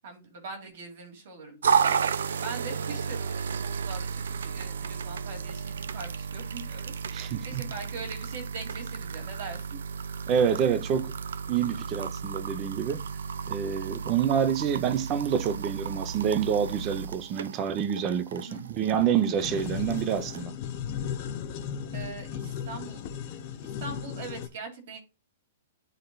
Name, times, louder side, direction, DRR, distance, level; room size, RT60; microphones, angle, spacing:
voice 1, 0.0-9.8 18.3-18.6 21.9-23.1 23.6-25.0, right 4 dB, 50° right, 2.3 m, -42 dB
sound 1, 1.6-20.4, right 6 dB, 90° right, 0.4 m, -33 dB
voice 2, 7.1-7.6 10.3-11.1 11.5-13.0 13.5-20.6, right 8 dB, 20° right, 0.5 m, -27 dB
sound 2, 19.4-24.5, left 8 dB, 30° left, 0.6 m, -35 dB
11.5 x 3.9 x 2.2 m
hypercardioid pair, 175°, 0 cm